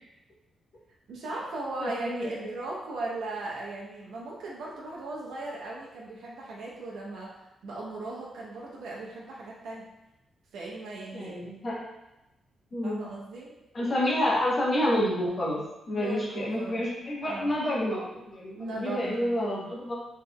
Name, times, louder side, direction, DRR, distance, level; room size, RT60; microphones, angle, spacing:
voice 1, 1.1-9.9 10.5-11.5 12.8-13.5 15.9-16.9 17.2-17.5 18.6-19.2, right 2 dB, 85° right, -4 dB, 0.8 m, -38 dB
voice 2, 1.8-2.5 11.1-11.9 12.7-13.1 13.7-15.6 15.9-19.9, left 1 dB, 35° left, -5 dB, 1.0 m, -29 dB
3.9 x 3.2 x 3.0 m, 0.94 s
wide cardioid pair, 175°, 0 cm